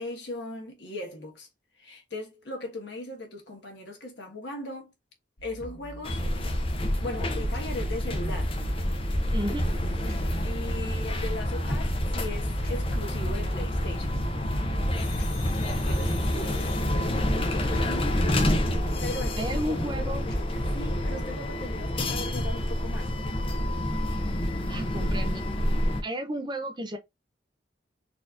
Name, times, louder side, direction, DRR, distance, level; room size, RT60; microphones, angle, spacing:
voice 1, 0.0-1.5 1.8-4.9 5.4-6.2 6.9-8.5 10.4-14.3 15.8-17.1 18.3-23.1, left 2 dB, 65° left, 1.4 m, -38 dB
sound 1, 5.4-20.5, left 1 dB, 50° left, 1.0 m, -44 dB
sound 2, 6.0-26.0, left 1 dB, 30° left, 0.6 m, -28 dB
voice 2, 9.3-9.6 19.4-20.2 24.7-25.4 26.0-27.0, right 1 dB, 25° right, 0.5 m, -33 dB
4.1 x 2.8 x 2.4 m
head